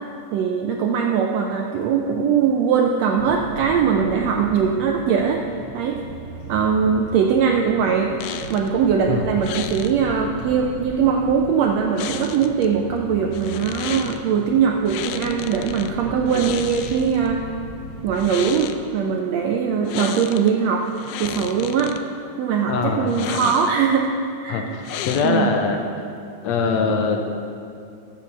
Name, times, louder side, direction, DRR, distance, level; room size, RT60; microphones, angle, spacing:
voice 1, 0.3-5.4 5.7-6.0 6.5-8.1 8.5-17.4 18.0-20.8 21.2-22.0 22.4-24.1 24.4-24.6 25.2-25.5, right 6 dB, 75° right, 2 dB, 1.6 m, -21 dB
sound 1, 3.2-18.5, right 1 dB, 45° right, 4.1 m, -38 dB
sound 2, 8.2-8.7 9.4-9.9 12.0-12.7 13.3-14.2 14.9-15.9 16.3-17.3 18.1-18.8 19.9-20.5 20.9-22.0 23.1-23.9 24.8-25.6, left 10 dB, 90° left, 2.1 m, -32 dB
voice 2, 22.7-23.3 24.5-25.8 26.4-27.2, left 5 dB, 70° left, 3 dB, 1.9 m, -22 dB
11.0 x 7.5 x 7.0 m, 2.5 s
omnidirectional pair, 3.6 m